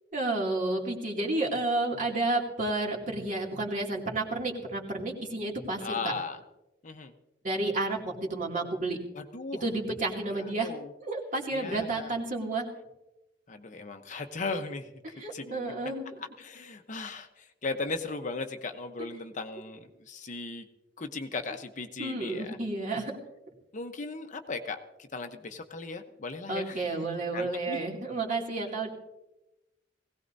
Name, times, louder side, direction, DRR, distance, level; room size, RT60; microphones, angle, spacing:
voice 1, 0.1-6.1 7.4-9.0 9.6-10.7 11.0-12.7 15.2-16.0 22.0-23.1 26.5-28.9, right 2 dB, 45° right, -2 dB, 2.5 m, -31 dB
voice 2, 5.8-6.4 6.8-7.1 9.1-9.6 10.6-10.9 11.5-12.1 13.5-15.7 16.4-20.7 21.0-22.6 23.7-24.8 25.1-27.0 27.3-27.8, left 3 dB, 45° left, 6 dB, 0.9 m, -37 dB
20.5 x 17.0 x 2.7 m, 0.96 s
head